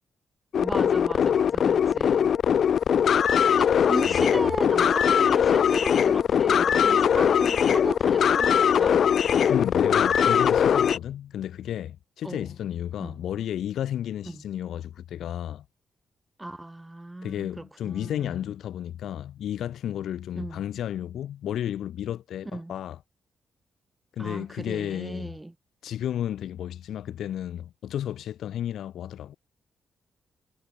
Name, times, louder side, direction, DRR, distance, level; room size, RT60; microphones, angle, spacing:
sound 1, 0.5-11.0, left 8 dB, 50° left, 0.4 m, -21 dB
voice 1, 0.6-2.3 2.6-2.7 3.5-9.1 12.2-12.5 13.0-13.2 14.2-14.4 16.4-18.4 20.3-20.6 22.5-22.8 24.2-25.5, right 1 dB, 10° right, 2.6 m, -36 dB
voice 2, 4.1-4.5 9.5-15.6 17.2-23.0 24.2-25.3 25.8-29.4, left 11 dB, 75° left, 0.9 m, -32 dB
wide cardioid pair, 155°, 0 cm